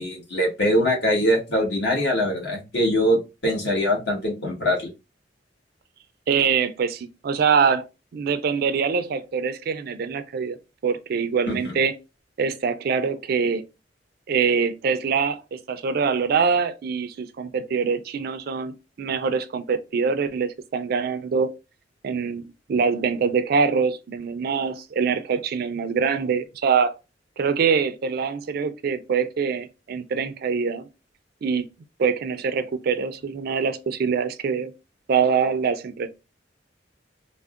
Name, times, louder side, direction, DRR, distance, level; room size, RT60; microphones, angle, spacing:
voice 1, 0.0-3.2 3.4-4.9 11.5-11.7, equal, 65° left, 1.3 m, -22 dB
voice 2, 6.3-7.8 8.1-10.6 10.8-11.9 12.4-13.6 14.3-21.5 22.0-22.4 22.7-26.9 27.4-30.9 31.4-31.7 32.0-34.7 35.1-36.1, right 6 dB, 55° right, 0.3 m, -24 dB
3.5 x 2.0 x 2.4 m
head